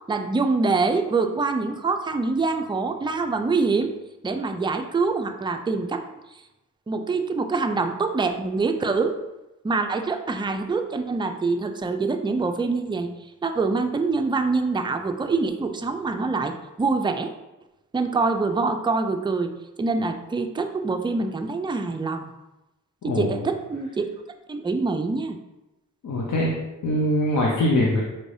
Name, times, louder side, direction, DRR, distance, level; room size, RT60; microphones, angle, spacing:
voice 1, 0.1-3.9 4.2-6.0 6.9-9.2 9.6-13.1 13.4-17.3 17.9-19.5 19.8-22.3 23.0-24.0 24.5-25.4, right 3 dB, 15° right, 6 dB, 0.4 m, -25 dB
voice 2, 23.0-23.3 26.0-26.5 26.8-28.0, left 1 dB, 60° left, -3 dB, 0.8 m, -22 dB
4.5 x 3.2 x 2.6 m, 0.98 s
cardioid pair, 55°, 34 cm